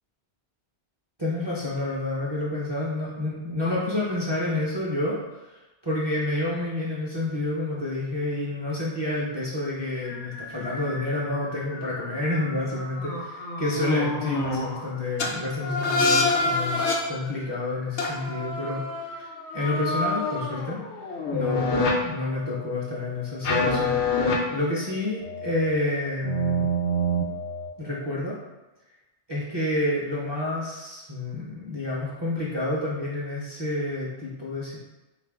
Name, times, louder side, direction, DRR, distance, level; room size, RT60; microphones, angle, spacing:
voice 1, 1.2-19.3 19.5-20.8 21.3-24.0 24.5-26.7 27.8-28.4 29.3-34.8, left 2 dB, 35° right, -6 dB, 0.5 m, -29 dB
sound 1, 10.0-14.8 15.2-15.3 15.6-17.0 18.0-21.9 23.4-24.4 25.2-25.8 26.2-27.7, left 2 dB, 85° left, 0.9 m, -27 dB
3.6 x 2.5 x 3.4 m, 1.1 s
omnidirectional pair, 1.1 m